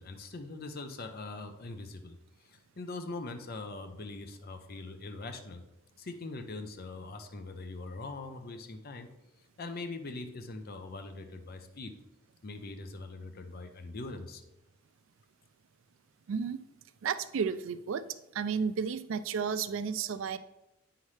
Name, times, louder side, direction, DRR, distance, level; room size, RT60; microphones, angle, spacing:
voice 1, 0.0-5.6 6.0-9.1 9.6-11.9 12.4-14.4, left 3 dB, 45° left, 7 dB, 0.6 m, -42 dB
voice 2, 16.3-16.6 17.0-18.0 18.3-20.4, right 6 dB, 65° right, 13 dB, 0.4 m, -32 dB
8.3 x 5.7 x 3.2 m, 0.92 s
head